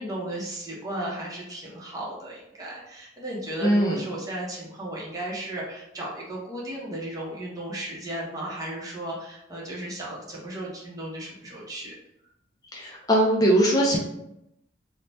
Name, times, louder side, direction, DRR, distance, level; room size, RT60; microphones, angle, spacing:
voice 1, 0.0-11.9, right 1 dB, 20° right, -4 dB, 0.7 m, -35 dB
voice 2, 3.6-4.0 12.7-14.0, right 1 dB, 20° left, -2 dB, 0.4 m, -21 dB
2.6 x 2.1 x 3.2 m, 0.84 s
head